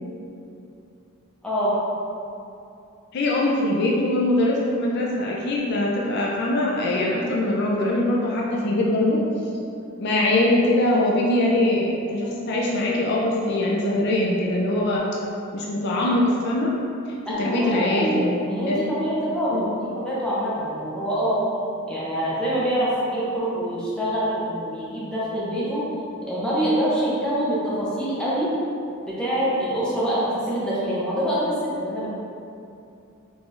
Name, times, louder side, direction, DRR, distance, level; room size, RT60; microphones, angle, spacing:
voice 1, 1.4-1.8 17.3-21.4 21.9-25.8 26.3-28.5 29.1-32.1, equal, 5° left, -9 dB, 0.7 m, -25 dB
voice 2, 3.1-9.2 10.0-15.0 15.5-16.7 17.4-18.8 19.5-19.7, left 1 dB, 50° left, -3 dB, 0.4 m, -22 dB
3.7 x 3.0 x 2.5 m, 2.6 s
head